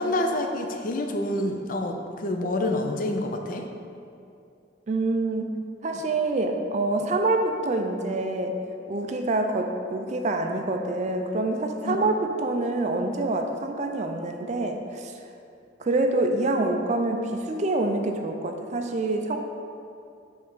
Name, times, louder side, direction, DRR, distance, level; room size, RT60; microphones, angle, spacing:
voice 1, 0.0-3.7 11.8-12.0, left 1 dB, 45° left, 4 dB, 0.4 m, -27 dB
voice 2, 4.9-5.5 5.8-8.6 8.9-15.1 15.8-19.4, right 2 dB, 40° right, 4 dB, 0.4 m, -26 dB
5.1 x 3.4 x 5.5 m, 2.5 s
head